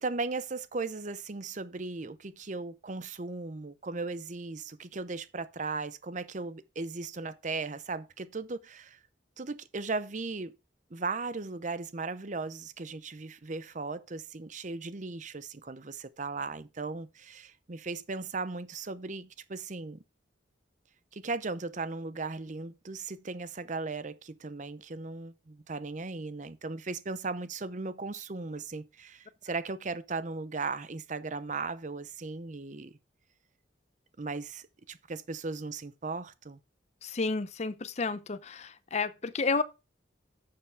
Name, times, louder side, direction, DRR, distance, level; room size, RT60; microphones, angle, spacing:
voice 1, 0.0-9.0 9.4-10.5 10.9-20.0 21.1-33.0 34.2-36.6, right 3 dB, 40° right, 0.7 m, -37 dB
voice 2, 37.0-39.6, left 4 dB, 35° left, 0.6 m, -31 dB
11.0 x 7.0 x 3.5 m
head